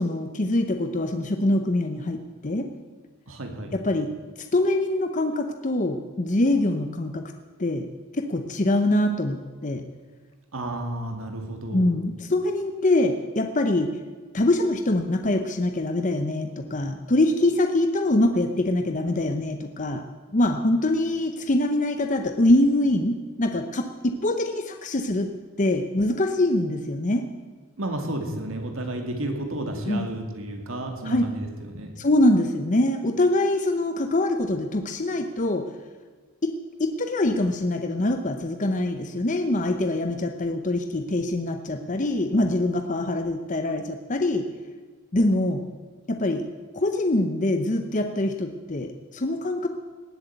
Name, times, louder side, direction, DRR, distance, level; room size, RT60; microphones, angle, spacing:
voice 1, 0.0-2.7 3.7-4.1 4.4-7.2 7.6-7.9 8.1-9.8 11.7-13.9 14.3-20.0 20.3-25.3 25.6-27.3 29.9-30.1 31.0-31.2 32.0-35.6 36.4-36.5 36.8-44.5 45.1-45.6 46.1-46.4 46.7-49.7, left 1 dB, 35° left, 6 dB, 0.7 m, -24 dB
voice 2, 3.3-3.8 10.5-11.8 27.8-31.9, right 1 dB, 65° right, 4 dB, 2.3 m, -32 dB
18.5 x 8.0 x 8.0 m, 1.4 s
head